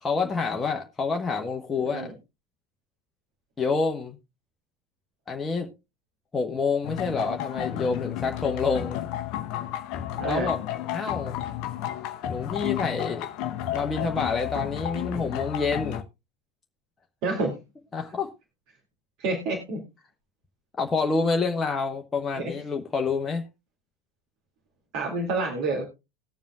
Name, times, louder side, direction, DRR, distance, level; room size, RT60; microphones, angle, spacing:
voice 1, 0.0-2.1 3.6-4.2 5.3-5.7 6.3-9.0 10.2-10.6 10.9-11.4 12.3-13.3 13.7-16.0 17.9-18.3 20.8-23.4, left 4 dB, 20° left, 1.0 m, -27 dB
sound 1, 6.8-16.0, left 11 dB, 50° left, 0.8 m, -32 dB
voice 2, 10.2-10.5 17.2-17.6 19.2-19.8 22.3-22.5 24.9-25.9, right 3 dB, 50° right, 2.2 m, -28 dB
20.0 x 7.3 x 2.3 m
figure-of-eight pair, 75°, 0 cm